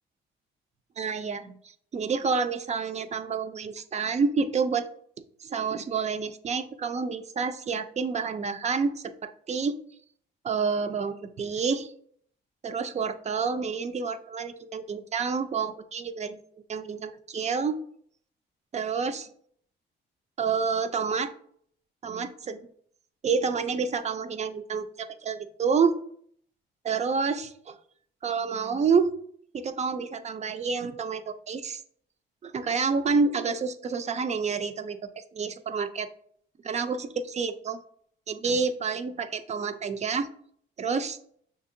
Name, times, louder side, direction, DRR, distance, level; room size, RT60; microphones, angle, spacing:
voice 1, 1.0-1.5 1.9-4.8 5.4-9.1 9.5-9.8 10.4-11.9 12.6-16.4 16.7-17.8 18.7-19.3 20.4-21.3 22.0-22.7 23.2-26.0 26.8-27.8 28.2-29.1 29.5-31.8 32.4-36.1 36.6-37.8 38.3-40.3 40.8-41.2, right 5 dB, 35° right, 10 dB, 0.4 m, -28 dB
6.3 x 2.8 x 2.5 m, 0.63 s
cardioid pair, 90°, 20 cm